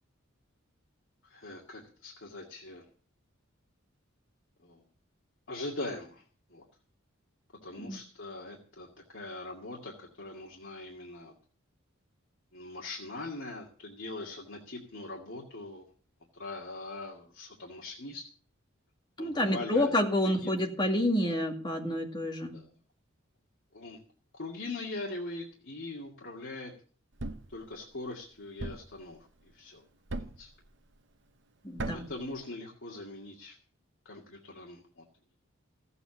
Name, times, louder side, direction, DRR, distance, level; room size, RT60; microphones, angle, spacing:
voice 1, 1.2-2.8 4.6-4.8 5.5-6.2 6.5-6.6 7.6-8.9 9.1-11.3 12.5-15.8 16.3-18.2 19.2-19.9 20.2-20.5 21.2-21.4 22.5-22.7 23.7-24.0 24.4-26.7 27.5-29.8 30.2-30.5 31.9-33.6 34.1-35.0, left 2 dB, 65° left, -2 dB, 2.2 m, -41 dB
voice 2, 19.2-22.6 31.6-32.1, left 1 dB, 20° left, 2 dB, 2.2 m, -29 dB
Thump thud, 27.2-27.6 28.6-29.0 30.1-30.5 31.8-32.2, right 2 dB, 55° right, 0.9 m, -37 dB
15.0 x 8.2 x 7.1 m, 0.43 s
head